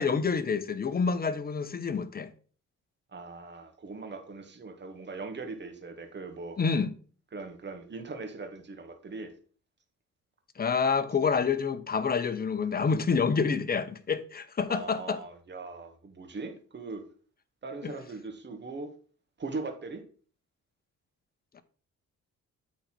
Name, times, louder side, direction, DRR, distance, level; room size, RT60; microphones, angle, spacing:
voice 1, 0.0-2.3 6.6-6.9 10.6-15.2 17.8-17.9 21.5-21.6, left 5 dB, 30° left, 0.9 m, -28 dB
voice 2, 3.1-6.6 7.3-9.3 14.7-17.0 17.6-18.9 19.4-20.0, right 3 dB, 35° right, 1.8 m, -40 dB
8.5 x 4.1 x 6.1 m
cardioid pair, 90°, 30 cm